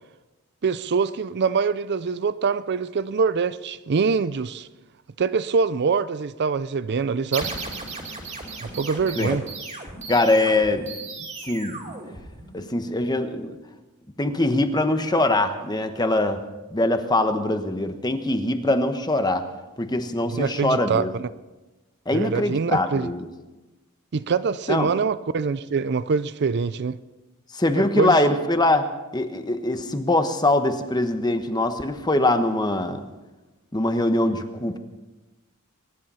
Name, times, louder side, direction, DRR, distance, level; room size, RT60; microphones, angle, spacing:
voice 1, 0.6-4.7 5.2-7.5 8.6-9.4 20.3-21.3 22.1-23.1 24.1-27.0 27.7-28.2, right 5 dB, 50° right, 0.5 m, -24 dB
sound 1, 7.3-12.8, right 3 dB, 30° right, 2.8 m, -36 dB
voice 2, 10.1-10.8 11.5-11.9 12.5-13.6 14.2-16.4 16.7-19.4 19.8-21.1 22.1-23.3 24.7-24.9 27.5-28.9 29.1-33.0 33.7-34.8, left 2 dB, 20° left, 1.1 m, -22 dB
23.0 x 10.5 x 5.6 m
head